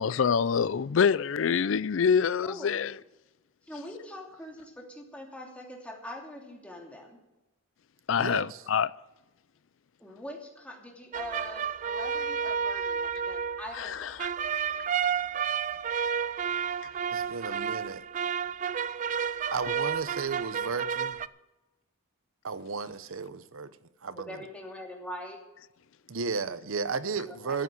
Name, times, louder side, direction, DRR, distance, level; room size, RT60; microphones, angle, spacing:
voice 1, 0.0-2.9 8.1-8.9 13.8-14.3, left 6 dB, 70° left, 0.4 m, -26 dB
voice 2, 2.4-2.8 3.7-7.2 10.0-14.1 24.1-25.4 27.3-27.6, left 1 dB, 5° left, 2.8 m, -43 dB
voice 3, 8.2-8.6 17.1-18.0 19.5-21.2 22.4-23.8 24.0-24.4 26.1-27.6, right 4 dB, 90° right, 0.8 m, -34 dB
sound 1, 11.1-21.3, right 7 dB, 40° right, 0.4 m, -31 dB
14.0 x 8.3 x 7.7 m
head